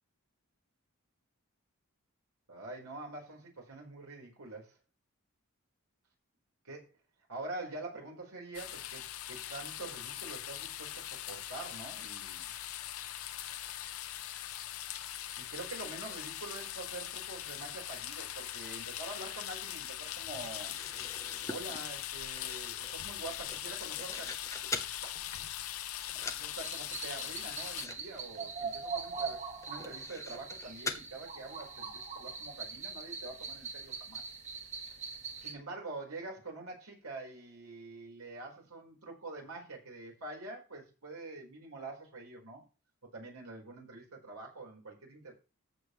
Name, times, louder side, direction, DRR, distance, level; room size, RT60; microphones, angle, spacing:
voice 1, 2.5-4.8 6.6-6.9 7.3-12.5 15.4-20.8 21.5-24.3 25.0-25.1 26.3-34.2 35.4-42.6 43.1-45.3, right 2 dB, 85° right, 0 dB, 4.6 m, -46 dB
sound 1, 8.5-27.9, left 12 dB, 75° left, 0.8 m, -41 dB
sound 2, 20.4-25.0 25.4-25.7 26.0-26.5 26.8-26.9 27.2-27.3 27.6-28.0 28.2-28.4 28.8-28.9 29.6-31.0, left 3 dB, 15° left, 1.0 m, -43 dB
sound 3, 26.5-35.5, right 5 dB, 35° right, 1.7 m, -42 dB
14.0 x 7.2 x 3.2 m, 0.32 s
head